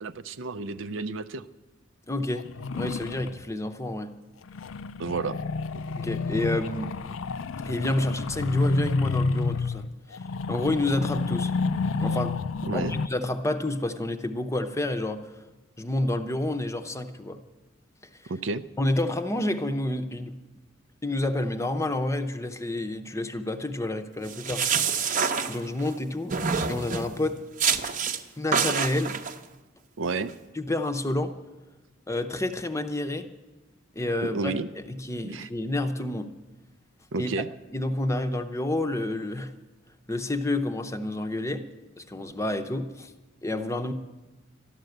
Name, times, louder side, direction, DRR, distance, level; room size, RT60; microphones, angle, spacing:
voice 1, 0.0-1.4 5.0-5.4 12.7-13.0 18.3-18.6 30.0-30.3 34.2-34.7 35.2-35.5 37.1-37.5, right 3 dB, 65° right, 11 dB, 0.5 m, -31 dB
voice 2, 2.1-2.5 2.7-4.1 6.0-6.9 7.6-11.5 12.0-12.4 12.7-15.4 15.8-17.4 18.8-20.4 21.0-25.0 25.5-26.4 26.7-27.4 28.4-29.2 30.6-31.3 32.1-33.3 33.9-36.3 37.2-37.3 37.7-39.5 40.1-41.7 42.0-43.1 43.4-43.9, left 1 dB, 15° left, 7 dB, 0.7 m, -29 dB
sound 1, 2.3-3.4 4.5-13.1, left 4 dB, 75° left, 0.5 m, -30 dB
sound 2, 24.3-25.9 26.3-27.1 27.6-28.2 28.5-29.3, right 6 dB, 40° right, 0.8 m, -26 dB
12.5 x 12.0 x 7.9 m, 1.1 s
head